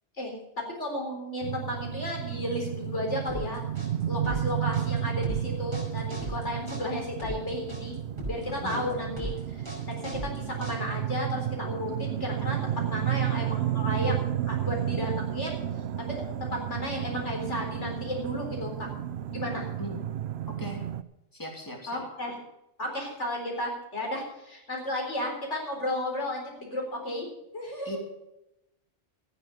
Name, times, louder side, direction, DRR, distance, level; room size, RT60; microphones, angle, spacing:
voice 1, 0.2-8.0 8.2-14.1 14.4-15.6 16.0-18.9 19.3-19.6 21.9-22.4 22.8-27.3 27.5-28.0, left 1 dB, 85° left, 0 dB, 4.4 m, -33 dB
sound 1, 1.4-21.0, right 11 dB, 70° right, 0.9 m, -32 dB
sound 2, 3.3-11.1, right 1 dB, 20° right, 5.3 m, -39 dB
voice 2, 8.5-8.9 19.8-20.0 20.6-20.8 21.3-21.9 27.8-28.0, left 1 dB, 15° left, -1 dB, 3.1 m, -38 dB
13.5 x 10.0 x 6.7 m, 0.87 s
omnidirectional pair, 1.2 m